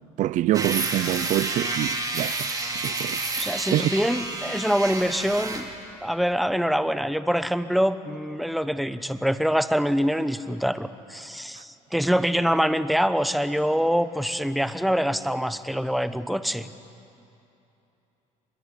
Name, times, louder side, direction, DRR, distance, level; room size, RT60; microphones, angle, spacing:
voice 1, 0.2-3.2 3.7-3.9, right 14 dB, 60° right, 0.6 m, -26 dB
sound 1, 0.5-5.7, right 3 dB, 25° right, 3.2 m, -29 dB
voice 2, 3.4-5.7 6.0-16.7, equal, ahead, 1.0 m, -25 dB
24.5 x 21.5 x 9.9 m
cardioid pair, 115°, 15 cm